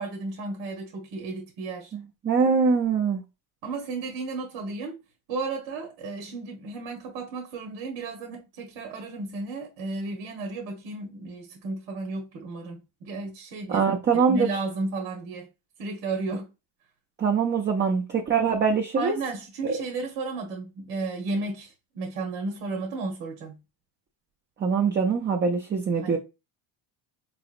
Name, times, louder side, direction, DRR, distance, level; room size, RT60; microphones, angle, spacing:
voice 1, 0.0-1.9 3.6-5.0 5.3-13.8 14.3-15.5 15.8-16.5 19.0-23.6 25.9-26.2, right 3 dB, 80° right, 1.1 m, -33 dB
voice 2, 1.9-3.2 13.7-14.5 17.2-19.1 19.6-19.7 24.6-26.2, right 5 dB, 25° right, 0.5 m, -23 dB
4.0 x 2.8 x 2.5 m
cardioid pair, 120°, 49 cm